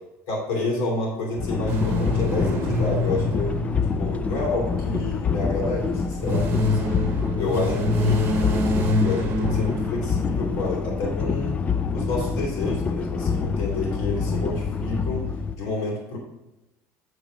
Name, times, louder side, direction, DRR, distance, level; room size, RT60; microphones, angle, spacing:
voice 1, 0.3-3.6 4.0-11.6 11.9-15.3 15.5-16.2, left 2 dB, 75° left, -3 dB, 2.6 m, -29 dB
sound 1, 1.4-15.5, left 5 dB, 20° left, 0.3 m, -26 dB
sound 2, 1.7-5.1 5.9-10.7, left 2 dB, 35° right, 1.1 m, -26 dB
8.2 x 4.0 x 5.0 m, 0.96 s
cardioid pair, 155°, 7 cm